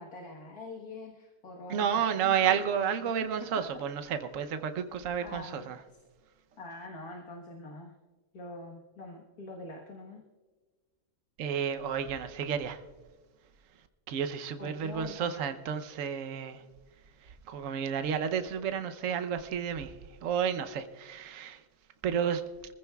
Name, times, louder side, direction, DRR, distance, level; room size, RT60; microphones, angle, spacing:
voice 1, 0.0-3.1 5.2-5.7 6.6-7.9 8.3-10.2 14.6-15.5, left 2 dB, 85° left, 1.9 m, -44 dB
voice 2, 1.7-5.8 11.4-12.8 14.1-16.6 17.5-20.0 20.2-21.6 22.0-22.4, right 8 dB, 65° right, 1.1 m, -31 dB
26.5 x 15.0 x 2.3 m
omnidirectional pair, 1.6 m